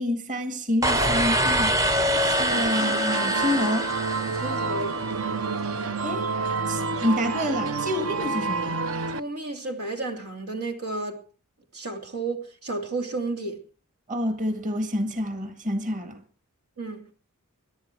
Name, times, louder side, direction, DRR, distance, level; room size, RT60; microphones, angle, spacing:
voice 1, 0.0-1.9 2.2-3.9 6.0-6.3 6.7-8.8 14.1-16.2, left 1 dB, 35° right, 1.9 m, -28 dB
sound 1, 0.8-5.0, right 1 dB, 15° right, 0.6 m, -24 dB
sound 2, 2.5-9.2, right 4 dB, 65° right, 0.8 m, -29 dB
voice 2, 4.3-5.0 9.1-11.2 11.7-13.6 16.8-17.1, right 3 dB, 90° right, 3.0 m, -32 dB
23.0 x 11.0 x 4.6 m
head